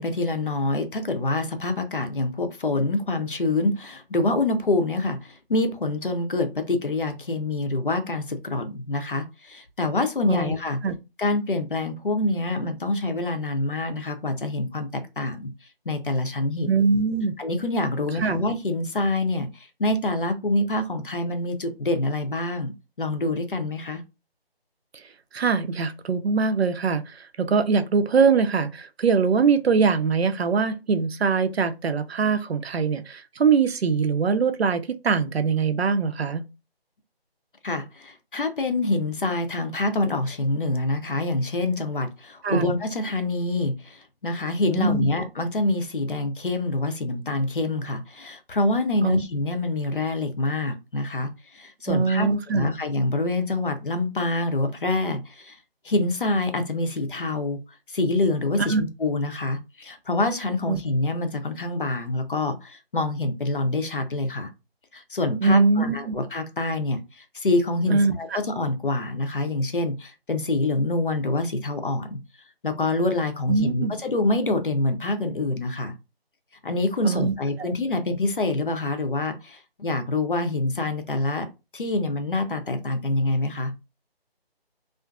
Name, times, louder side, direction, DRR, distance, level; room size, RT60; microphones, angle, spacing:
voice 1, 0.0-10.8 11.2-15.5 15.9-16.7 17.4-22.7 23.0-24.0 37.6-52.3 52.5-55.6 55.8-57.6 57.9-64.5 64.9-72.2 72.6-75.9 76.6-81.5 81.7-83.7, left 2 dB, 55° left, 0.6 m, -26 dB
voice 2, 16.7-17.3 18.2-18.4 25.3-36.4 42.4-42.7 44.8-45.1 49.0-49.2 51.9-52.7 58.6-58.8 60.7-60.8 65.4-66.1 67.9-68.4 73.5-74.0 77.0-77.3 77.6-77.7, right 5 dB, 80° right, 0.5 m, -22 dB
2.5 x 2.4 x 2.3 m
figure-of-eight pair, 180°, 31 cm